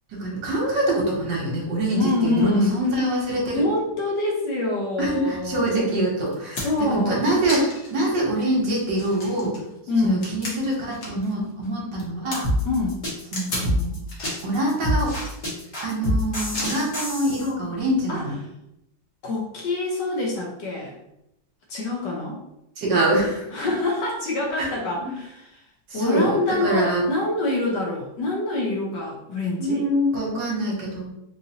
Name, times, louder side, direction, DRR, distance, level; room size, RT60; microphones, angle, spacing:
voice 1, 0.1-3.7 5.0-9.6 10.0-12.5 13.3-13.9 14.4-15.1 15.8-18.3 22.8-23.5 24.6-24.7 25.0-25.1 25.9-27.0 29.6-31.0, right 1 dB, 65° right, -3 dB, 1.5 m, -24 dB
voice 2, 2.0-2.7 3.5-5.9 6.6-7.2 9.9-10.3 12.6-13.0 18.1-18.2 19.2-21.0 21.7-22.4 23.5-25.4 25.9-29.9, left 2 dB, 65° left, -1 dB, 1.2 m, -25 dB
sound 1, 5.7-5.8 6.3-6.9 7.5-8.0 8.4-8.5 8.9-11.3 11.6-12.4 13.3-13.7 14.1-14.5 15.0-15.7 16.5-17.1 18.2-18.3, left 1 dB, 50° left, 0.9 m, -34 dB
sound 2, 12.4-17.5, equal, 25° left, 1.1 m, -26 dB
4.1 x 2.6 x 2.7 m, 0.84 s
omnidirectional pair, 2.2 m